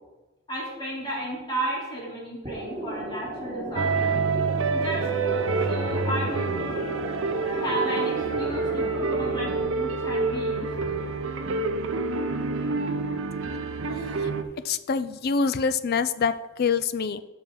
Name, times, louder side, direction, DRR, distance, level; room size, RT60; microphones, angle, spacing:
voice 1, 0.5-4.2 4.7-5.1 5.7-6.5 7.5-11.0, right 1 dB, 20° left, -6 dB, 3.3 m, -33 dB
sound 1, 2.4-9.6, right 1 dB, 25° right, 1.7 m, -35 dB
sound 2, 3.8-14.4, right 4 dB, 70° right, 0.6 m, -27 dB
Dog, 4.6-9.7, left 1 dB, 90° left, 2.6 m, -43 dB
voice 2, 14.6-16.3 16.6-17.2, left 5 dB, 50° left, 13 dB, 0.4 m, -25 dB
11.5 x 6.0 x 3.8 m, 1.1 s
head